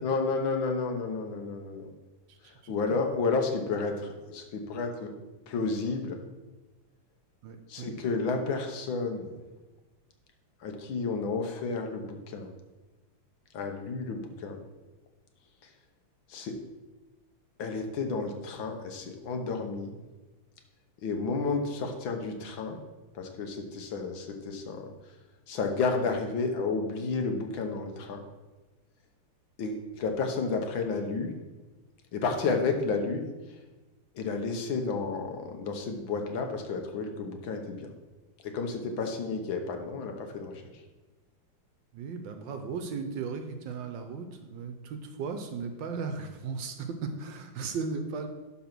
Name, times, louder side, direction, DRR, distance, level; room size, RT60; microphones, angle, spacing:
voice 1, 0.0-1.9 2.7-5.1 5.5-6.2 7.7-9.4 10.6-12.5 13.5-14.6 15.6-15.7 16.3-16.6 17.6-20.0 21.0-22.8 23.1-24.9 25.5-28.2 29.6-31.3 32.1-33.2 34.1-37.9 38.4-40.8, left 4 dB, 70° left, 4 dB, 1.7 m, -31 dB
voice 2, 7.4-7.9 41.9-48.3, right 5 dB, 70° right, 6 dB, 1.3 m, -36 dB
11.5 x 3.8 x 6.0 m, 1.2 s
omnidirectional pair, 2.3 m